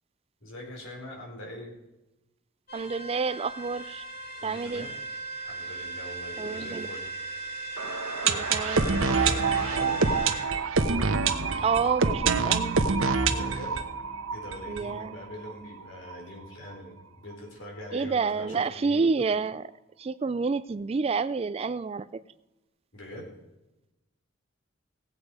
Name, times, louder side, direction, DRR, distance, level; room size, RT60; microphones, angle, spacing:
voice 1, 0.4-1.7 4.4-4.9 5.4-7.0 8.3-8.5 9.2-10.1 13.2-13.8 14.3-19.0 22.9-23.3, left 1 dB, 70° left, 0 dB, 4.0 m, -43 dB
sound 1, 2.7-10.4, right 3 dB, 45° left, 2.3 m, -38 dB
voice 2, 2.7-4.0 4.4-4.9 6.4-6.9 8.2-8.9 11.6-12.8 14.7-15.2 17.9-19.7 20.0-22.2, right 4 dB, 30° right, 16 dB, 0.3 m, -29 dB
sound 2, 7.8-15.5 15.8-15.9 16.1-16.2 16.7-16.8, right 4 dB, 80° right, 1.0 m, -26 dB
17.5 x 8.1 x 4.9 m, 0.97 s
head